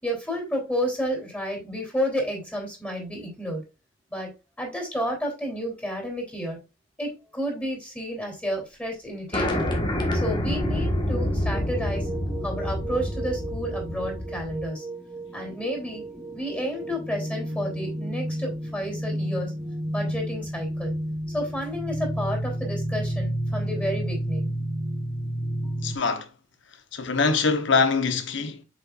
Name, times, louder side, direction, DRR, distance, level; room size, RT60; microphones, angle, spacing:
voice 1, 0.0-3.6 4.1-4.3 4.6-6.6 7.0-9.7 10.1-12.1 12.4-14.8 15.3-16.0 16.3-19.5 19.9-20.9 21.3-24.5, equal, 10° left, 3.3 m, -31 dB
sound 1, 9.3-14.6, left 1 dB, 25° left, 1.5 m, -27 dB
sound 2, 11.5-26.0, right 1 dB, 15° right, 1.0 m, -31 dB
voice 2, 25.8-26.3 26.9-28.6, left 4 dB, 65° left, 1.0 m, -23 dB
7.1 x 5.5 x 2.5 m
head